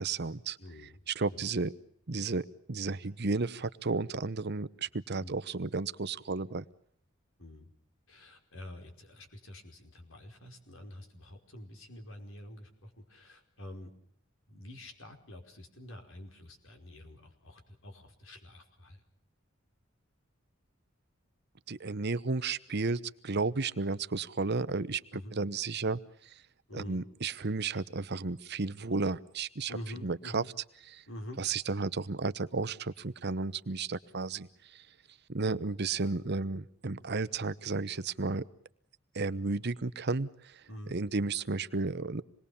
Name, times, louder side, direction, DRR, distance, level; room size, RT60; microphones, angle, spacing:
voice 1, 0.0-0.6 1.1-1.7 2.1-6.6 21.7-25.0 25.3-26.3 26.7-29.8 30.0-30.4 30.9-31.0 31.4-34.8 35.3-38.4 39.1-40.6 40.9-42.2, right 3 dB, 55° right, 15 dB, 1.0 m, -33 dB
voice 2, 0.6-1.0 1.3-1.4 5.2-5.4 7.4-7.7 8.1-13.9 14.5-19.0 25.1-25.3 26.7-27.0 29.7-30.5 31.1-31.4 40.7-41.0, left 1 dB, 75° left, 5 dB, 5.1 m, -47 dB
27.0 x 21.0 x 7.1 m, 0.64 s
head